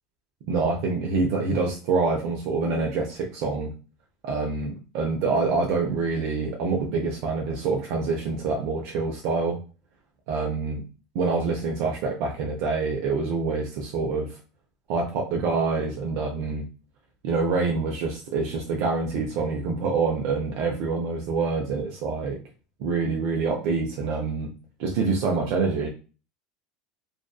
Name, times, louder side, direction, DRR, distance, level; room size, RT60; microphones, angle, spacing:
voice 1, 0.5-3.7 4.2-9.6 10.3-10.8 11.1-14.4 14.9-16.7 17.2-22.4 22.8-24.5 24.8-25.9, right 4 dB, 60° right, 1 dB, 0.5 m, -26 dB
2.5 x 2.4 x 2.2 m, 0.35 s
supercardioid pair, 140°, 0 cm